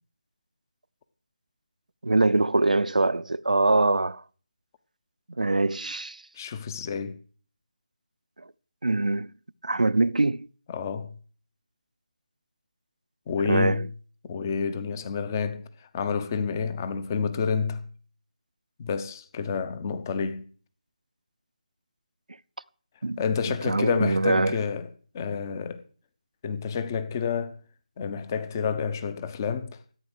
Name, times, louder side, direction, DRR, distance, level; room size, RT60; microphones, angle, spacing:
voice 1, 2.0-4.2 5.4-6.2 8.8-9.3 9.6-10.5 13.4-13.9 23.0-24.6, right 2 dB, 85° right, 0.6 m, -23 dB
voice 2, 6.3-7.2 10.7-11.2 13.3-13.9 14.2-17.9 18.8-20.5 23.2-24.9 25.1-25.8 26.4-27.6 28.0-29.8, left 6 dB, 25° left, 0.9 m, -29 dB
14.0 x 8.8 x 6.3 m
figure-of-eight pair, 160°, 4 cm